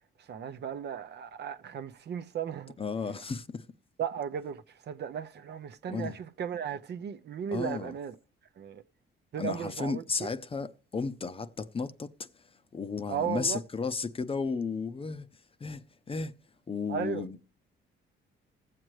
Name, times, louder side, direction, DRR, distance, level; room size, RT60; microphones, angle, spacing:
voice 1, 0.3-2.8 4.0-8.1 8.6-8.8 9.3-10.3 13.1-13.6 16.9-17.2, right 8 dB, 60° right, 0.7 m, -35 dB
voice 2, 2.8-3.7 5.9-6.2 7.5-7.9 9.4-12.3 12.7-15.3 15.6-16.3 16.7-17.4, left 4 dB, 30° left, 0.6 m, -34 dB
20.5 x 7.6 x 3.1 m
cardioid pair, 90°, 20 cm